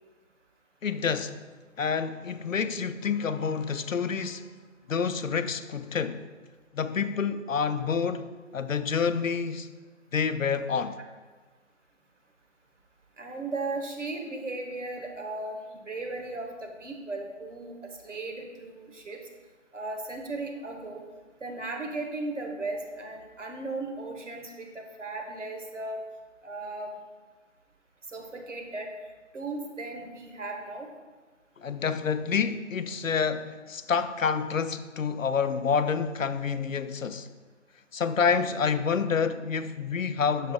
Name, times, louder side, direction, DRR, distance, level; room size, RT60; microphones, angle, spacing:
voice 1, 0.8-1.3 1.8-4.5 4.9-6.3 6.7-9.7 10.1-11.0 31.6-37.3 37.9-40.5, left 6 dB, 80° left, 0.6 m, -28 dB
voice 2, 13.2-19.2 19.7-21.0 21.4-26.0 26.4-26.9 28.1-28.9 29.3-30.9, right 2 dB, 65° right, 1.3 m, -36 dB
9.9 x 6.4 x 2.4 m
figure-of-eight pair, 160°, 39 cm